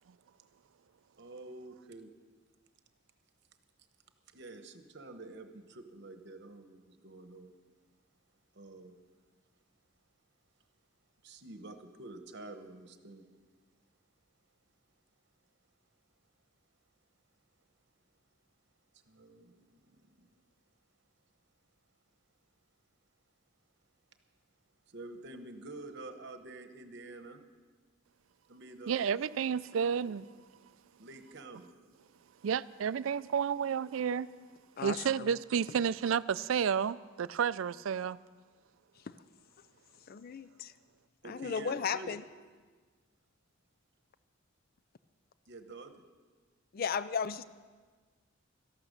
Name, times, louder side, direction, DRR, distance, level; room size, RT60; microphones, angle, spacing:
voice 1, 1.2-2.1 4.3-7.5 8.5-9.0 11.2-13.3 19.0-20.3 24.9-27.4 28.5-28.9 30.0-30.1 31.0-31.7 41.2-42.1 45.5-46.0, right 2 dB, 55° right, 1.1 m, -48 dB
voice 2, 28.9-30.3 32.4-34.3 34.8-38.2, right 7 dB, 70° right, 0.4 m, -31 dB
voice 3, 34.8-35.3 39.0-39.1 40.1-40.7 41.2-42.2 46.7-47.4, left 6 dB, 45° left, 0.4 m, -35 dB
13.5 x 11.5 x 6.6 m
head